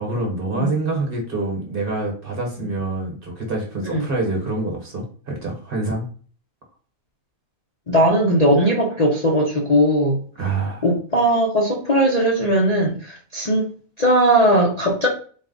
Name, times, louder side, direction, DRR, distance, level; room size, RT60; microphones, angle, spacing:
voice 1, 0.0-6.1 10.4-10.9, right 2 dB, 40° right, 0 dB, 1.3 m, -26 dB
voice 2, 7.9-10.2 10.8-13.7 14.0-15.1, right 1 dB, 35° left, -3 dB, 0.7 m, -18 dB
4.1 x 2.4 x 3.8 m, 0.42 s
omnidirectional pair, 1.5 m